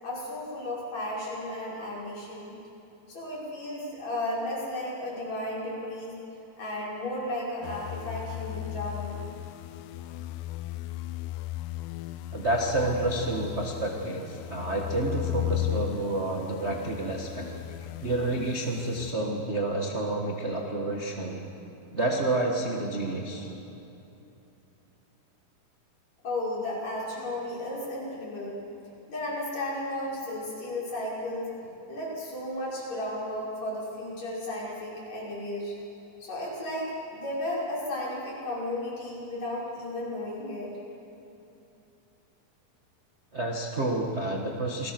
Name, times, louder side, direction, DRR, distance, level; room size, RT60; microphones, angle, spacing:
voice 1, 0.0-2.6 3.1-6.1 6.6-9.2 23.3-23.4 26.2-28.6 29.1-35.8 36.2-40.7, left 1 dB, 50° left, -6 dB, 6.7 m, -34 dB
sound 1, 7.6-19.1, left 16 dB, 80° left, 2.3 m, -36 dB
voice 2, 12.3-17.4 18.0-21.4 21.9-23.5 43.3-44.9, right 2 dB, 40° right, 0 dB, 1.0 m, -29 dB
28.5 x 20.0 x 6.1 m, 2.8 s
omnidirectional pair, 3.9 m